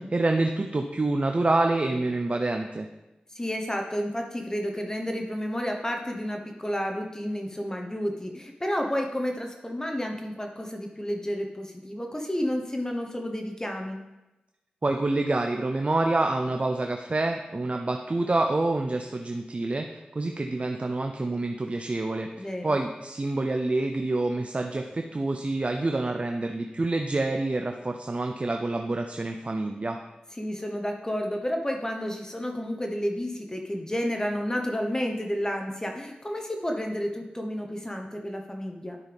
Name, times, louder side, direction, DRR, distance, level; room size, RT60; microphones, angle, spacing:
voice 1, 0.0-2.9 14.8-19.9 20.1-30.0, right 2 dB, 45° right, 4 dB, 0.6 m, -27 dB
voice 2, 3.3-14.0 22.4-22.8 30.4-39.0, equal, 20° left, 2 dB, 1.1 m, -31 dB
11.0 x 5.6 x 3.5 m, 1.0 s
cardioid pair, 40°, 3 cm